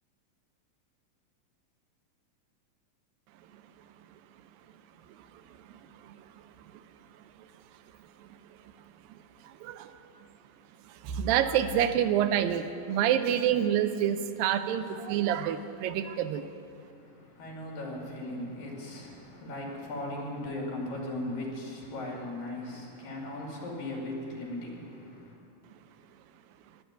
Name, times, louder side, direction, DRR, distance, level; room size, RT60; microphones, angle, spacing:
voice 1, 11.0-16.4, right 10 dB, 85° right, 10 dB, 2.4 m, -27 dB
voice 2, 16.8-25.4, left 1 dB, 75° left, -2 dB, 4.3 m, -38 dB
12.0 x 10.0 x 9.2 m, 2.6 s
omnidirectional pair, 4.1 m